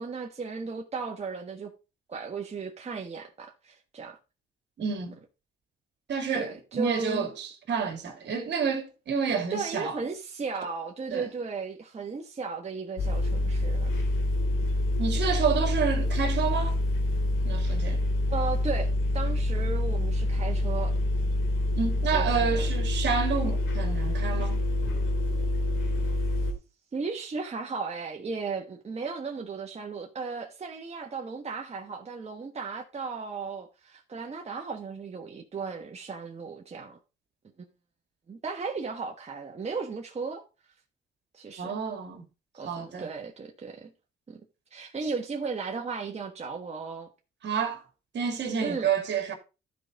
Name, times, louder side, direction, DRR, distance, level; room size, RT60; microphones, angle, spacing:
voice 1, 0.0-1.7 2.1-4.2 6.3-7.3 9.5-13.9 18.3-21.0 22.1-22.7 26.9-37.0 38.3-40.4 41.3-41.8 42.5-43.9 44.3-44.4 44.7-47.1 48.6-48.9, right 4 dB, 35° right, 1.3 m, -35 dB
voice 2, 4.8-5.2 6.1-10.0 11.1-11.3 15.0-16.8 17.4-18.0 21.8-24.7 41.6-42.3 42.6-43.1 47.4-47.8 48.1-49.4, right 6 dB, 60° right, 2.6 m, -29 dB
sound 1, 13.0-26.5, left 1 dB, 80° left, 2.4 m, -27 dB
13.0 x 5.0 x 4.0 m
cardioid pair, 90°, 20 cm